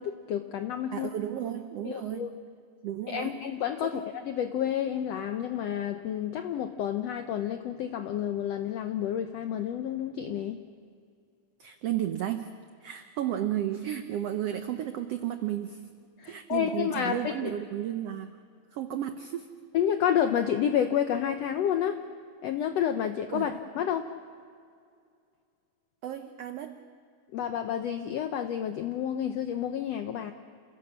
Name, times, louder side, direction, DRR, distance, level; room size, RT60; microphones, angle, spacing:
voice 1, 0.0-1.1 1.8-2.3 3.1-10.6 16.2-17.5 19.7-22.0 22.4-24.1 27.3-30.3, left 9 dB, 80° left, 8 dB, 1.4 m, -30 dB
voice 2, 0.9-2.3 2.8-3.4 3.8-4.0 11.6-12.5 12.8-15.9 16.3-18.4 18.7-19.5 23.3-23.5 26.0-26.8, right 11 dB, 80° right, 8 dB, 1.4 m, -33 dB
28.0 x 16.5 x 7.3 m, 2.3 s
omnidirectional pair, 3.8 m